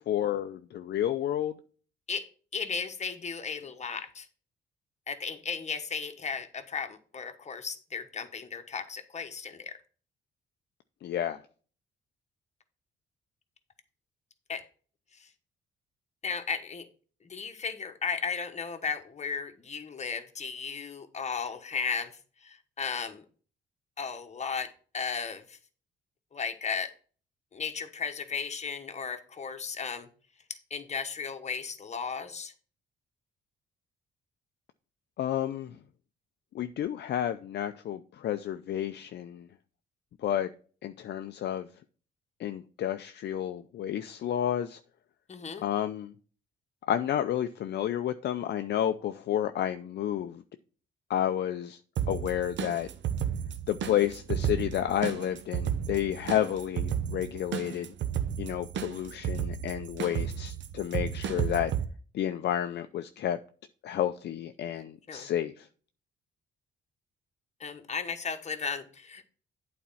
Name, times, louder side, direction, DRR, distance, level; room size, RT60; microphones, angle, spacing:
voice 1, 0.0-1.5 11.0-11.4 35.2-35.7 36.5-39.5 40.2-40.5 40.8-41.7 42.4-44.8 45.6-46.1 46.9-50.4 51.1-51.8 52.1-52.9 53.7-57.9 58.4-61.7 62.1-63.4 63.8-65.7, left 11 dB, 60° left, 0.5 m, -30 dB
voice 2, 2.5-4.3 5.1-9.7 14.5-14.6 15.2-15.3 16.2-16.9 17.2-22.1 22.4-23.2 24.0-25.6 26.3-26.9 27.5-30.1 30.7-32.5 45.3-45.6 65.1-65.3 67.6-69.3, left 5 dB, 35° left, 1.2 m, -35 dB
sound 1, 52.0-61.8, right 9 dB, 65° right, 0.9 m, -33 dB
8.5 x 4.2 x 5.6 m
cardioid pair, 90°, 20 cm